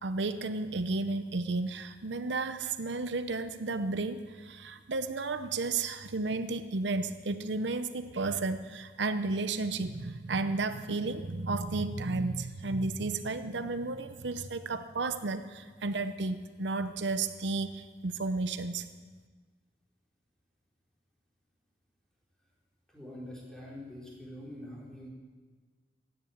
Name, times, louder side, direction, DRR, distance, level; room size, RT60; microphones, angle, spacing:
voice 1, 0.0-18.8, right 3 dB, 80° right, 10 dB, 0.8 m, -33 dB
voice 2, 22.9-25.1, left 1 dB, 5° left, -5 dB, 4.4 m, -45 dB
16.0 x 11.0 x 8.0 m, 1.5 s
head